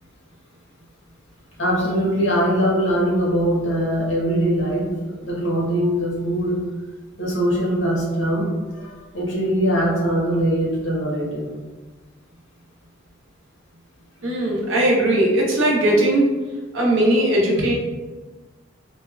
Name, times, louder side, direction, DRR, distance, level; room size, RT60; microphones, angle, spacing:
voice 1, 1.6-4.9 5.2-6.6 7.2-11.5, equal, 65° left, -4 dB, 0.9 m, -22 dB
voice 2, 14.2-16.4 16.7-17.7, right 1 dB, 75° right, -2 dB, 0.7 m, -19 dB
3.2 x 2.0 x 2.2 m, 1.3 s
head